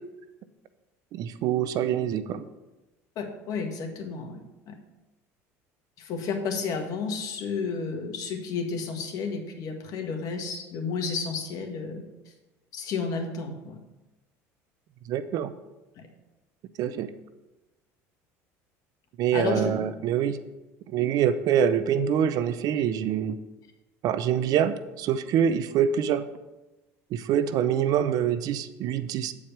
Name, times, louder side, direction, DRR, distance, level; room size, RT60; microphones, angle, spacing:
voice 1, 1.1-2.4 15.1-15.5 16.8-17.1 19.2-20.4 20.9-23.4 24.0-26.3 27.1-29.3, right 9 dB, 60° right, 13 dB, 0.6 m, -25 dB
voice 2, 3.2-4.4 4.7-4.8 6.0-12.1 12.7-13.8 16.0-16.1 19.3-19.7, left 5 dB, 55° left, 3 dB, 1.6 m, -31 dB
8.7 x 4.8 x 6.0 m, 1.0 s
supercardioid pair, 100°, 7 cm